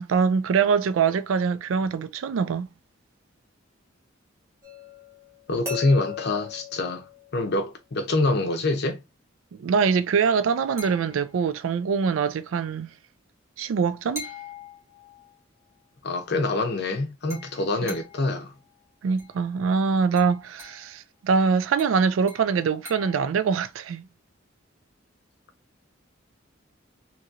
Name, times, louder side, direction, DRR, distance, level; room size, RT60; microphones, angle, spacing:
voice 1, 0.0-2.7 9.5-12.9 13.6-14.3 17.8-17.9 19.0-24.1, right 5 dB, 75° right, 0.3 m, -24 dB
sound 1, 4.6-7.7 10.8-11.6 14.2-15.4 17.3-18.4 19.2-19.4 20.2-20.9 21.8-23.3, left 5 dB, 15° right, 1.1 m, -40 dB
voice 2, 5.5-7.0 7.3-9.0 16.0-18.5, left 2 dB, 55° left, 0.7 m, -25 dB
3.0 x 2.7 x 2.5 m
head